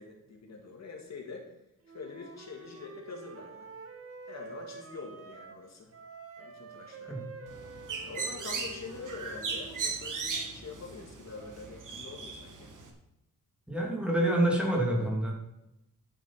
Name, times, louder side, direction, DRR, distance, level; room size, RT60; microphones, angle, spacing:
voice 1, 0.0-1.5 1.9-3.7 4.3-5.9 6.4-7.3 8.0-12.7, left 4 dB, 55° left, 1 dB, 2.0 m, -45 dB
Wind instrument woodwind instrument, 1.8-5.6 5.9-9.9, right 4 dB, 45° right, 1.6 m, -48 dB
Bird, 7.5-12.9, right 4 dB, 65° right, 2.1 m, -38 dB
voice 2, 13.7-15.3, right 1 dB, 5° right, -2 dB, 2.7 m, -27 dB
11.0 x 7.2 x 5.9 m, 0.87 s
wide cardioid pair, 165°, 33 cm